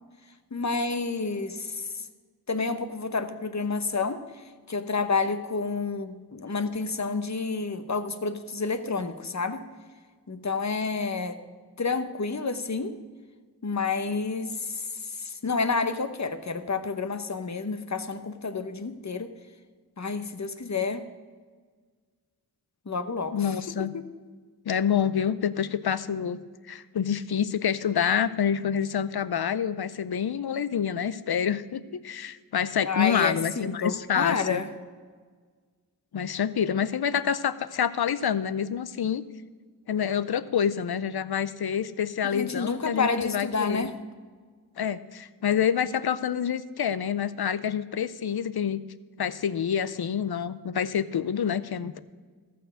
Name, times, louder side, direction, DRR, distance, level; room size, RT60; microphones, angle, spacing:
voice 1, 0.5-2.1 2.5-4.2 4.7-9.6 10.3-11.4 11.8-13.0 13.6-19.3 20.0-21.0 22.9-24.1 32.8-34.7 42.3-43.9, left 4 dB, 45° left, 10 dB, 0.9 m, -29 dB
voice 2, 23.3-23.9 24.7-26.4 26.7-34.6 36.1-39.2 39.9-43.9 44.8-48.8 49.2-52.0, left 8 dB, 75° left, 15 dB, 0.6 m, -27 dB
14.0 x 6.8 x 6.3 m, 1.5 s
wide cardioid pair, 55°, 38 cm